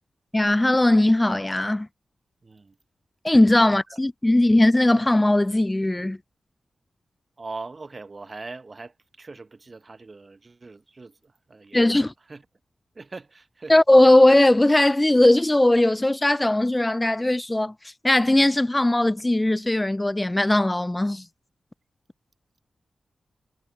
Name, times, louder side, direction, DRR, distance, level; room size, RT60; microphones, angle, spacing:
voice 1, 0.3-1.9 3.2-6.2 11.7-12.1 13.7-21.2, left 1 dB, 20° left, 0.5 m, -19 dB
voice 2, 2.4-2.8 3.9-4.0 7.4-12.4 12.9-13.7, right 3 dB, 45° right, 0.9 m, -41 dB
cardioid pair, 40°, 0 cm